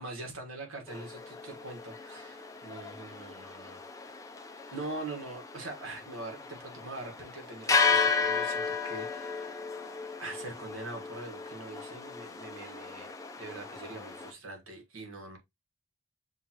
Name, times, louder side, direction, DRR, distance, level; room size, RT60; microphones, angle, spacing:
voice 1, 0.0-3.8 4.7-9.5 10.2-13.1 13.4-15.4, right 2 dB, 80° right, 1.6 m, -43 dB
sound 1, 0.9-14.3, left 5 dB, 15° left, 0.6 m, -34 dB
6.7 x 2.5 x 2.9 m
head